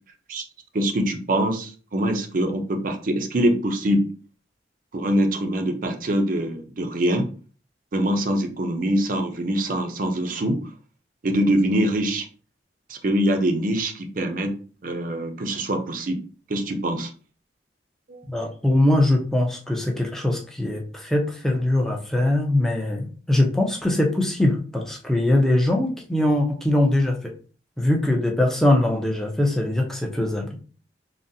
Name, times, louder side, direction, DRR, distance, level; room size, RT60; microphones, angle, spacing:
voice 1, 0.7-4.1 4.9-7.3 7.9-10.6 11.2-12.3 12.9-14.5 14.8-16.2 16.5-17.1 18.1-18.2, right 1 dB, 50° right, 5 dB, 0.5 m, -24 dB
voice 2, 18.3-27.3 27.8-30.5, left 1 dB, ahead, 1 dB, 0.5 m, -22 dB
3.7 x 2.1 x 2.6 m, 0.39 s
head